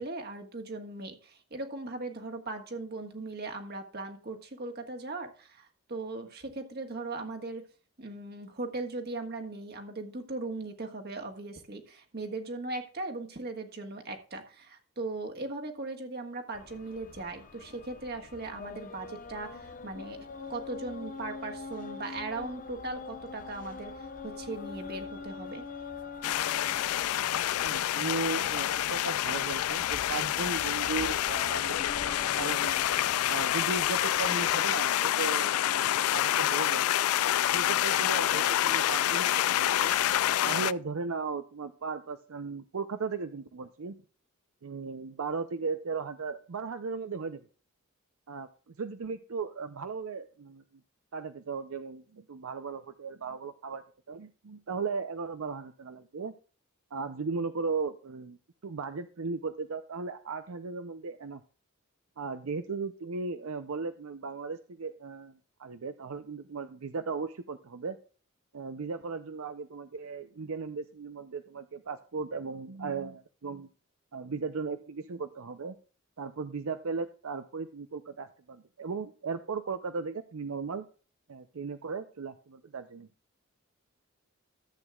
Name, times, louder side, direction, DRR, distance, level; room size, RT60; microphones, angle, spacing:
voice 1, 0.0-7.6 8.0-20.2 20.5-25.6, right 2 dB, 45° right, 4 dB, 1.5 m, -38 dB
sound 1, 16.5-34.6, left 4 dB, 40° left, 0.9 m, -44 dB
sound 2, 26.2-40.7, left 12 dB, 80° left, 0.3 m, -27 dB
voice 2, 27.6-32.0 32.4-32.8 33.3-36.9 37.5-39.9 40.4-44.0 44.6-47.5 48.3-50.6 51.1-56.3 56.9-58.4 58.6-61.4 62.2-68.0 68.5-73.7 74.1-75.8 76.2-80.9 81.3-83.1, right 4 dB, 70° right, 9 dB, 0.6 m, -36 dB
14.0 x 8.2 x 2.3 m, 0.38 s
head